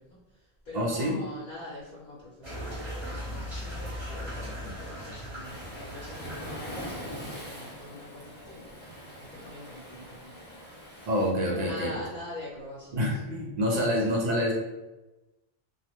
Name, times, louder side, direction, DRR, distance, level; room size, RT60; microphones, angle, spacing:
voice 1, 0.0-2.8 3.1-10.9 11.5-13.2 13.8-14.1, left 1 dB, 60° left, -6 dB, 0.8 m, -44 dB
voice 2, 0.7-1.2 11.1-11.9 12.9-14.5, equal, 55° right, -2 dB, 0.5 m, -27 dB
sound 1, 2.4-7.3, equal, 30° right, 1.0 m, -39 dB
Waves surf, 5.4-11.3, equal, 15° left, 0.5 m, -42 dB
2.3 x 2.0 x 2.9 m, 1.1 s
omnidirectional pair, 1.0 m